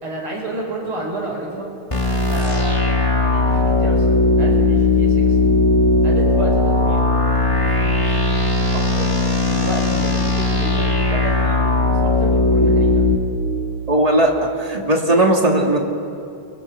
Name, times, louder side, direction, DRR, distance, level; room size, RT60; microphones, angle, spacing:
voice 1, 0.0-1.7 2.3-5.4 6.0-7.0 7.6-8.2 9.0-12.9, right 2 dB, 40° right, -2 dB, 6.1 m, -31 dB
sound 1, 1.9-13.2, left 2 dB, 10° left, 2.2 m, -17 dB
voice 2, 13.9-15.8, right 1 dB, 15° right, 0 dB, 1.9 m, -17 dB
29.0 x 23.5 x 5.7 m, 2.6 s
omnidirectional pair, 3.5 m